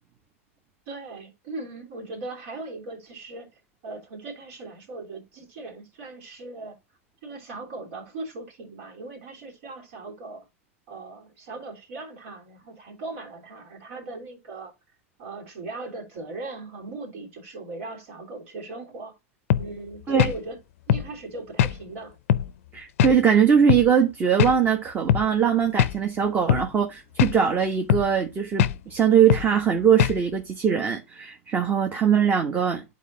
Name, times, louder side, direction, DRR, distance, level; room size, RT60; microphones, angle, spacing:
voice 1, 0.9-6.8 7.2-10.5 10.9-14.7 15.2-19.2 19.6-20.6 20.9-22.2, right 2 dB, 65° right, 3.1 m, -39 dB
sound 1, 19.5-19.7 20.2-20.4 20.9-21.1 21.6-21.8 22.3-22.5 23.0-23.2 23.7-23.9 24.4-24.6 25.1-25.3 25.8-26.0 26.5-26.7 27.2-27.4 27.9-28.1 28.6-28.8 29.3-29.5 30.0-30.2, left 10 dB, 70° left, 0.5 m, -21 dB
voice 2, 22.7-32.8, right 7 dB, 25° right, 1.2 m, -21 dB
11.5 x 4.3 x 2.7 m
hypercardioid pair, 115°, 8 cm